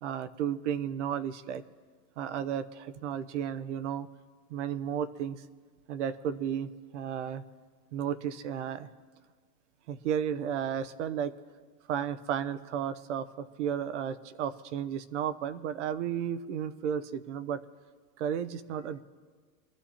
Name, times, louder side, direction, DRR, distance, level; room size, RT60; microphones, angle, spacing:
voice 1, 0.0-1.6 2.2-4.1 4.5-5.4 5.9-7.4 7.9-8.9 9.9-11.3 11.9-17.6 18.2-19.0, right 9 dB, 50° right, 14 dB, 0.7 m, -33 dB
24.5 x 13.0 x 2.9 m, 1.5 s
supercardioid pair, 170°, 45 cm